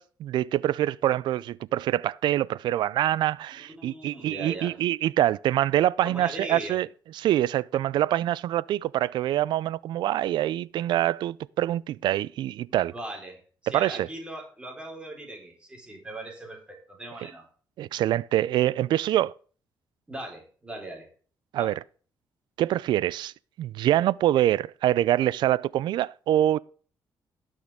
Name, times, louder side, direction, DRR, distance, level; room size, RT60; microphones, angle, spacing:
voice 1, 0.0-6.9 7.1-12.9 13.7-14.1 17.8-19.3 21.5-21.8 22.6-23.3 23.6-26.6, right 13 dB, 75° right, 0.4 m, -25 dB
voice 2, 3.6-4.7 6.0-6.8 12.9-17.5 20.1-21.1 21.6-21.7, right 1 dB, 15° right, 4.2 m, -39 dB
17.5 x 6.3 x 3.6 m
cardioid pair, 105°, 8 cm